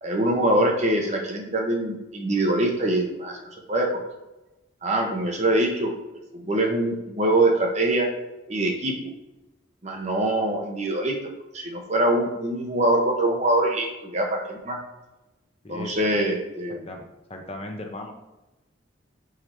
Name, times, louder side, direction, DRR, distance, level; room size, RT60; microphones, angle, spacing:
voice 1, 0.0-4.0 4.8-5.9 6.3-8.1 8.5-8.9 9.8-11.2 11.5-14.8 15.7-16.9, right 1 dB, 35° right, 2 dB, 0.9 m, -24 dB
voice 2, 15.6-16.1 16.7-17.0 17.3-18.1, left 2 dB, 30° left, 3 dB, 0.7 m, -37 dB
5.0 x 4.6 x 4.4 m, 1.0 s
head